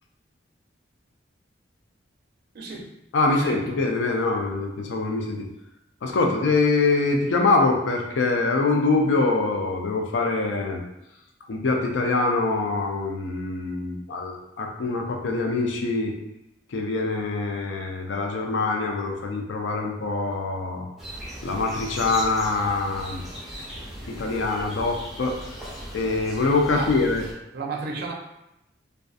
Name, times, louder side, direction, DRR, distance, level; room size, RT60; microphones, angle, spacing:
voice 1, 2.5-2.9 3.3-3.8 26.7-26.9 27.5-28.1, right 4 dB, 55° right, -1 dB, 0.5 m, -32 dB
voice 2, 3.1-5.5 6.0-10.8 11.5-16.1 16.7-20.9 21.4-23.2 24.0-25.5 25.9-27.2, left 3 dB, 75° left, 2 dB, 0.4 m, -24 dB
sound 1, 21.0-27.3, equal, ahead, 0.5 m, -38 dB
2.5 x 2.3 x 2.3 m, 0.88 s
head